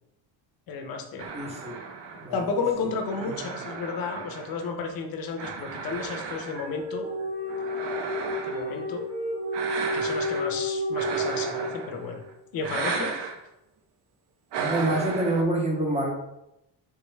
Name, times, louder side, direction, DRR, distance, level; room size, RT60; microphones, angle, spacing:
voice 1, 0.7-1.3 2.3-7.1 8.4-9.0 9.9-12.2 12.5-13.1, left 4 dB, 50° left, 4 dB, 0.6 m, -32 dB
sound 1, 1.2-4.9 5.4-6.9 7.5-8.8 9.5-10.6 10.9-12.1 12.6-13.4 14.5-15.4, right 5 dB, 65° right, 0.5 m, -34 dB
voice 2, 1.3-1.8 2.2-2.4 3.2-3.3 14.6-16.1, right 1 dB, 15° right, -1 dB, 0.6 m, -26 dB
sound 2, 5.9-12.3, equal, 85° right, 1.1 m, -31 dB
3.4 x 2.2 x 3.1 m, 0.85 s
cardioid pair, 140°, 45 cm